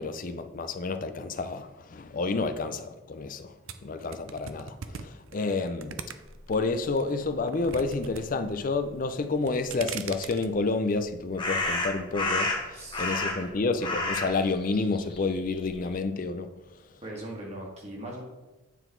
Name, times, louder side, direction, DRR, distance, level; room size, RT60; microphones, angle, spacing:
voice 1, 0.0-3.5 3.8-4.7 5.0-6.0 6.5-12.5 13.0-16.5, left 3 dB, 45° left, 0.5 m, -29 dB
sound 1, 3.7-6.5 7.0-8.2 8.5-9.0 9.4-10.5, right 7 dB, 85° right, 0.5 m, -39 dB
sound 2, 10.2-10.3 11.4-13.5 13.8-15.9, left 2 dB, 25° left, 1.2 m, -30 dB
voice 2, 12.7-13.6 17.0-18.2, right 1 dB, 30° right, 1.8 m, -41 dB
9.0 x 3.9 x 4.5 m
head